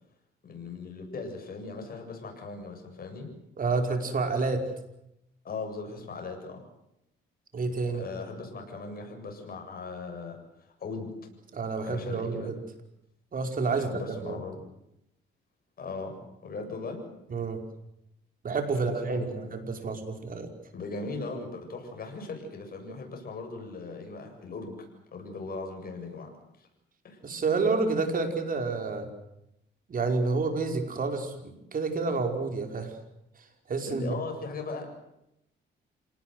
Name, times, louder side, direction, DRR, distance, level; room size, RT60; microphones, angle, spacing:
voice 1, 0.4-3.3 5.4-6.6 7.9-11.1 11.8-12.5 13.7-14.6 15.8-16.2 16.4-17.0 18.7-19.5 20.7-26.3 26.6-26.7 27.0-27.2 33.8-35.0, left 3 dB, 50° left, 3 dB, 7.6 m, -39 dB
voice 2, 3.6-4.6 7.5-8.0 11.5-12.6 13.3-14.4 17.3-17.6 18.4-20.5 27.2-29.1 29.9-32.9 33.7-34.2, right 4 dB, 45° right, 5 dB, 5.4 m, -29 dB
27.0 x 19.0 x 7.9 m, 0.83 s
cardioid pair, 90°, 20 cm